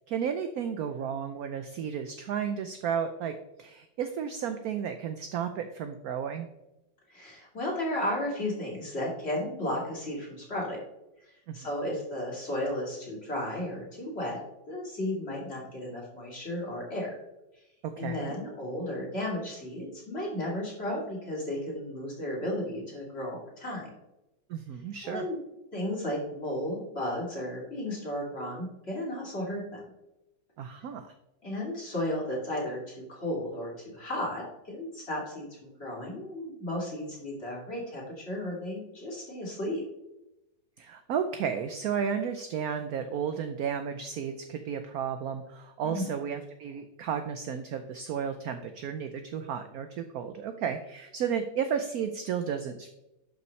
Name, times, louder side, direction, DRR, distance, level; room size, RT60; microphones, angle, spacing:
voice 1, 0.1-6.5 11.5-11.6 17.8-18.4 24.5-25.2 30.6-31.1 40.8-52.9, right 7 dB, 70° right, 8 dB, 0.9 m, -33 dB
voice 2, 7.1-10.8 11.5-14.4 14.7-17.1 18.0-23.9 25.0-25.4 25.7-29.8 31.4-39.8 45.8-46.1, left 1 dB, 35° left, -4 dB, 2.8 m, -34 dB
11.5 x 5.5 x 3.2 m, 0.93 s
omnidirectional pair, 2.0 m